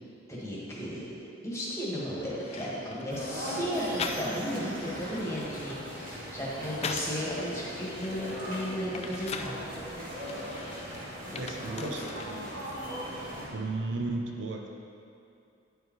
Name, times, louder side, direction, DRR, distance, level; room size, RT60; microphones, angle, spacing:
voice 1, 0.3-1.1 1.4-9.6 10.0-10.4 11.3-11.4 11.7-11.9, equal, 15° left, -7 dB, 1.7 m, -35 dB
sound 1, 2.4-3.2 4.0-4.6 5.0-7.3 7.7-9.6 10.2-12.3 12.6-13.4, left 5 dB, 30° left, 0.3 m, -41 dB
sound 2, 3.1-13.5, equal, 45° right, 2.1 m, -39 dB
voice 2, 11.4-12.7 13.5-14.7, right 3 dB, 65° right, 2 dB, 0.6 m, -35 dB
10.0 x 4.9 x 4.6 m, 2.6 s
head